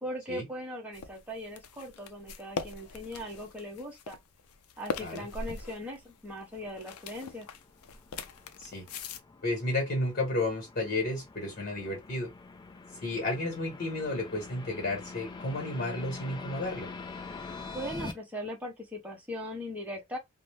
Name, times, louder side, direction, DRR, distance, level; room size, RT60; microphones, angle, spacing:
voice 1, 0.0-4.2 4.8-7.5 17.7-20.2, equal, 5° right, 0.7 m, -39 dB
sound 1, 0.9-9.2, left 5 dB, 90° left, 0.4 m, -41 dB
sound 2, 6.6-18.1, left 3 dB, 20° left, 0.3 m, -45 dB
voice 2, 9.4-12.3 13.0-16.9, left 2 dB, 45° left, 1.2 m, -32 dB
2.6 x 2.1 x 3.1 m
head